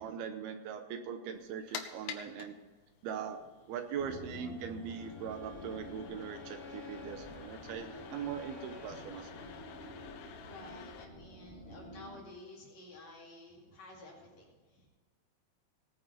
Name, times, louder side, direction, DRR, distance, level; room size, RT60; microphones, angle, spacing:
voice 1, 0.0-2.6 3.0-3.4 3.7-9.6, right 7 dB, 75° right, 7 dB, 2.8 m, -41 dB
sound 1, 1.3-11.0, left 8 dB, 85° left, 3.1 m, -50 dB
sound 2, 4.0-12.2, equal, 25° left, 1.6 m, -50 dB
Bowed string instrument, 4.9-10.3, left 5 dB, ahead, 0.4 m, -52 dB
voice 2, 10.4-14.9, left 2 dB, 45° left, -2 dB, 3.2 m, -52 dB
18.5 x 9.3 x 4.2 m, 1.3 s
omnidirectional pair, 4.7 m